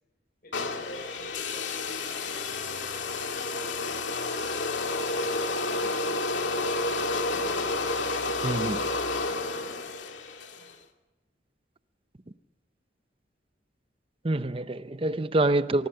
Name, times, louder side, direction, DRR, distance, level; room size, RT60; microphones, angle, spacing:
voice 1, 0.4-2.0 2.4-4.5 5.3-9.9 10.5-10.7, left 1 dB, 55° left, 6.3 m, -49 dB
sound 1, 0.5-10.7, left 3 dB, 80° left, 2.3 m, -30 dB
voice 2, 8.4-8.8 14.2-15.9, right 2 dB, 30° right, 0.7 m, -26 dB
24.0 x 19.0 x 7.0 m
head